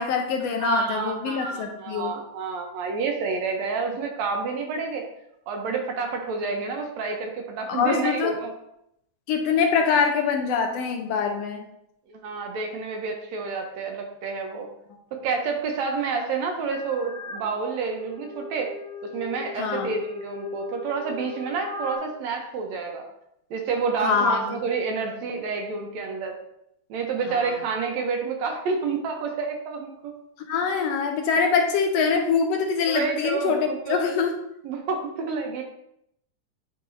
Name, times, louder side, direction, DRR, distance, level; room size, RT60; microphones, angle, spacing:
voice 1, 0.0-2.1 7.7-8.3 9.3-11.7 19.6-19.9 24.0-24.6 27.3-27.5 30.5-34.3, left 5 dB, 85° left, 3 dB, 1.4 m, -24 dB
voice 2, 0.6-5.1 5.5-8.5 12.1-14.7 15.1-18.7 19.0-23.0 23.5-26.4 26.9-30.1 32.9-34.1 34.6-35.6, right 5 dB, 75° right, 3 dB, 1.9 m, -29 dB
sound 1, 16.7-17.4 17.9-22.0, left 5 dB, 55° right, 0.8 m, -37 dB
10.5 x 3.9 x 2.6 m, 0.79 s
omnidirectional pair, 3.5 m